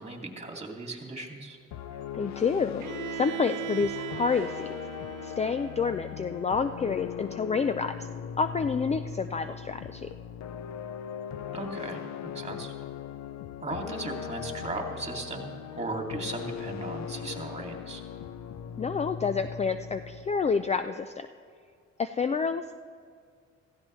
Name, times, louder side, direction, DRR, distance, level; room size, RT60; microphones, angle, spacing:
voice 1, 0.0-1.6 11.5-12.7 13.6-18.0, right 2 dB, 20° right, 2 dB, 2.3 m, -37 dB
sound 1, 1.7-20.9, left 8 dB, 65° left, 0.7 m, -39 dB
voice 2, 2.1-2.8 3.1-4.7 5.2-8.1 8.4-10.1 18.8-21.3 22.0-22.6, left 5 dB, 25° left, 10 dB, 0.4 m, -28 dB
Bowed string instrument, 2.8-6.7, right 14 dB, 90° right, 0.6 m, -40 dB
16.0 x 15.0 x 3.2 m, 2.2 s
cardioid pair, 90°, 30 cm